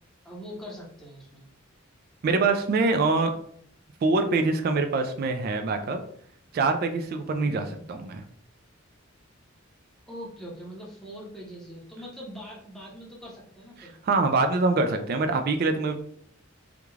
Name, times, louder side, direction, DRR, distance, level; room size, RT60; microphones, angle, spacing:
voice 1, 0.2-1.4 7.4-7.8 10.1-13.9, equal, ahead, -5 dB, 0.8 m, -42 dB
voice 2, 2.2-3.3 4.0-6.0 6.5-8.2 13.8-15.9, right 3 dB, 50° right, 6 dB, 0.3 m, -24 dB
3.5 x 2.4 x 3.1 m, 0.64 s
head